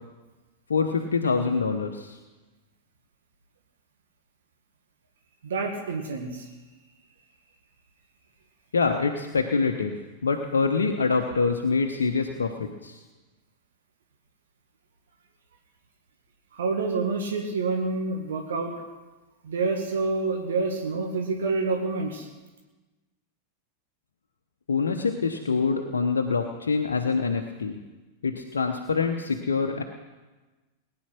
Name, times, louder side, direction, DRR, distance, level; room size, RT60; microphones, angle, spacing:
voice 1, 0.7-2.2 8.7-10.0 10.2-13.0 24.7-27.8 28.2-29.8, left 4 dB, 70° left, 4 dB, 1.0 m, -25 dB
voice 2, 5.4-6.5 16.5-18.7 19.4-22.3, right 3 dB, 65° right, 3 dB, 1.8 m, -28 dB
20.0 x 9.9 x 6.1 m, 1.2 s
figure-of-eight pair, 90°, 0 cm